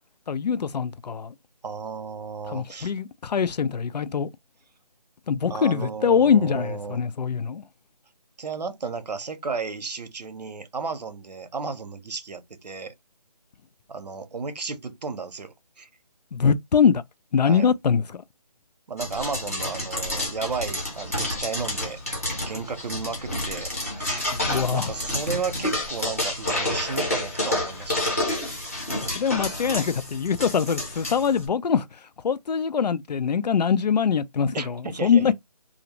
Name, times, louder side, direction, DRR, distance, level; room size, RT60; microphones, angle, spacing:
voice 1, 0.3-1.3 2.5-4.3 5.3-7.6 16.3-17.0 17.3-18.2 24.3-24.9 29.2-31.9 32.2-35.3, left 6 dB, 85° left, 0.4 m, -23 dB
voice 2, 1.6-2.9 5.5-7.0 8.4-12.9 13.9-15.9 17.4-17.7 18.9-22.0 22.4-23.7 24.0-24.3 24.7-28.3 34.5-35.3, right 5 dB, 80° right, 0.7 m, -33 dB
sound 1, 19.0-31.4, left 1 dB, 20° left, 0.7 m, -29 dB
2.6 x 2.0 x 2.9 m
hypercardioid pair, 180°, 21 cm